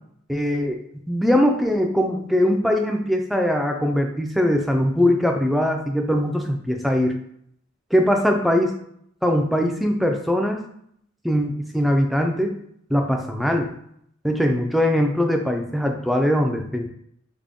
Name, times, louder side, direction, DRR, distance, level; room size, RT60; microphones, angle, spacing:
voice 1, 0.3-0.8 1.1-7.2 7.9-8.8 9.2-10.6 11.2-12.6 12.9-13.7 14.2-16.9, equal, ahead, 3 dB, 0.3 m, -21 dB
3.6 x 2.1 x 3.5 m, 0.69 s
head